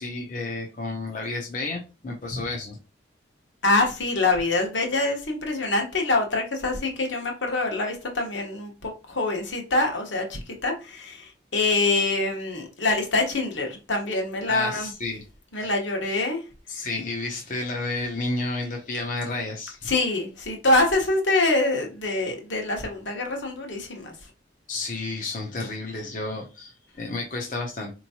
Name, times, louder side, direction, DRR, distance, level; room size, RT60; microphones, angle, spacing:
voice 1, 0.0-2.8 14.5-15.2 15.6-15.7 16.7-19.9 24.7-27.9, left 2 dB, 40° left, 0.6 m, -31 dB
voice 2, 3.6-14.9 15.5-16.4 19.9-24.1, left 2 dB, 75° left, 1.2 m, -25 dB
4.5 x 3.0 x 2.8 m
head